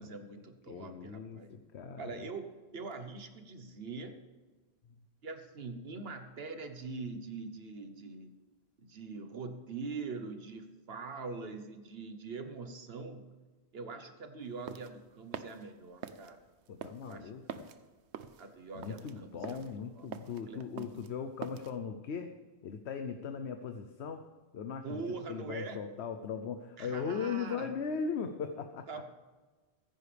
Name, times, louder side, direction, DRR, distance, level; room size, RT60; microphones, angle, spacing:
voice 1, 0.0-1.6 2.0-4.2 5.2-8.3 8.8-13.4 13.7-16.4 17.0-17.3 18.4-20.9 24.8-25.9 26.8-27.8 28.9-29.1, right 4 dB, 65° right, 8 dB, 1.3 m, -43 dB
voice 2, 0.7-2.0 16.7-17.6 18.7-22.3 22.6-24.2 24.5-25.0 25.3-28.9, left 6 dB, 75° left, 7 dB, 1.0 m, -38 dB
sound 1, 14.4-21.8, right 8 dB, 80° right, 1.0 m, -46 dB
15.5 x 14.5 x 3.4 m, 1.3 s
omnidirectional pair, 1.1 m